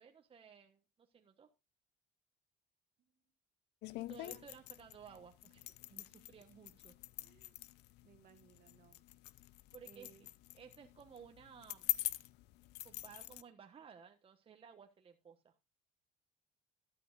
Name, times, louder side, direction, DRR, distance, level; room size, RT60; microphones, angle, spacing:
voice 1, 0.0-1.5 3.9-7.0 9.7-10.1 10.5-12.0 12.8-15.5, right 7 dB, 35° right, 4 dB, 1.2 m, -57 dB
sound 1, 3.8-13.4, left 18 dB, 85° left, 0.5 m, -45 dB
voice 2, 4.1-4.4 6.1-6.3 7.2-7.6 8.0-9.0 9.8-10.3, right 8 dB, 55° right, 8 dB, 1.7 m, -65 dB
13.0 x 11.5 x 2.4 m, 0.23 s
cardioid pair, 110°, 17 cm